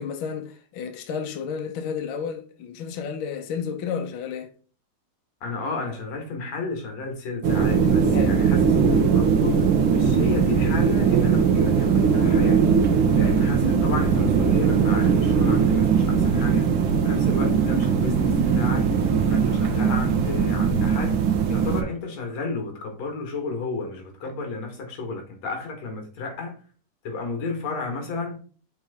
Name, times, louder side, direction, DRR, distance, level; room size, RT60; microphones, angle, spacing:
voice 1, 0.0-4.5 8.1-8.4, left 6 dB, 75° left, 1.1 m, -31 dB
voice 2, 5.4-16.7 17.0-18.9 19.3-21.2 21.5-26.6 27.0-28.4, left 3 dB, 60° left, 2.6 m, -32 dB
sound 1, 7.4-21.8, right 6 dB, 65° right, 1.3 m, -20 dB
6.1 x 5.2 x 3.6 m
omnidirectional pair, 3.8 m